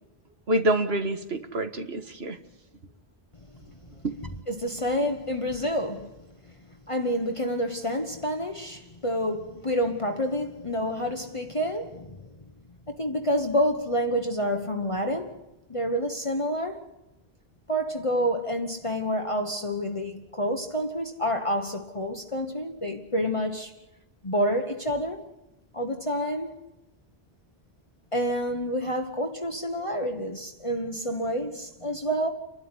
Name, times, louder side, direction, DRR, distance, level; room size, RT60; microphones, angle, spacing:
voice 1, 0.5-2.4 4.0-4.1, right 1 dB, 70° right, 1.8 m, -26 dB
voice 2, 4.5-6.2 6.9-12.2 12.9-15.4 15.7-16.8 17.7-23.7 24.2-25.2 25.7-26.5 28.1-32.3, equal, 30° left, 1.3 m, -28 dB
30.0 x 12.0 x 9.8 m
omnidirectional pair, 1.1 m